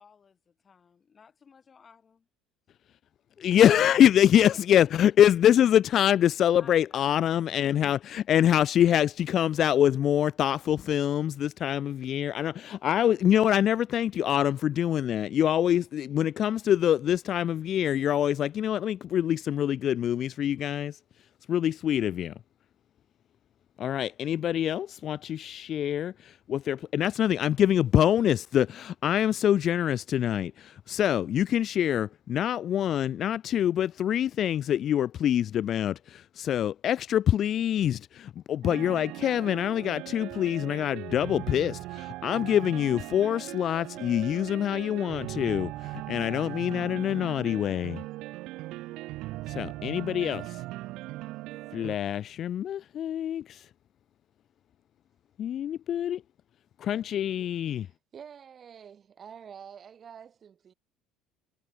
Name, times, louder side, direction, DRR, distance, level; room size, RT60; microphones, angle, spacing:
voice 1, 0.0-2.3 3.4-4.6 4.8-4.9 6.6-7.5, left 6 dB, 30° left, 5.4 m, -55 dB
voice 2, 3.4-21.0 21.5-22.3 23.8-48.0 49.5-50.6 51.7-53.7 55.4-56.2 56.8-57.9, left 10 dB, 45° left, 0.7 m, -25 dB
sound 1, 38.6-52.0, right 18 dB, 70° right, 0.7 m, -39 dB
voice 3, 57.2-60.7, right 7 dB, 35° right, 5.1 m, -48 dB
cardioid pair, 110°, 0 cm